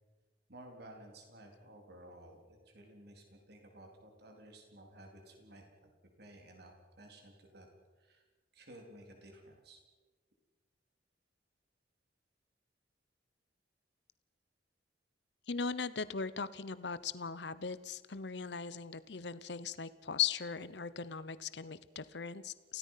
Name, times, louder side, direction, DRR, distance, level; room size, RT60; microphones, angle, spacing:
voice 1, 0.5-5.6 6.2-7.7 8.0-8.2 8.5-9.8, right 1 dB, 60° right, 2 dB, 3.9 m, -55 dB
voice 2, 15.5-22.8, left 6 dB, 65° left, 15 dB, 0.9 m, -38 dB
29.5 x 17.0 x 5.8 m, 1.3 s
head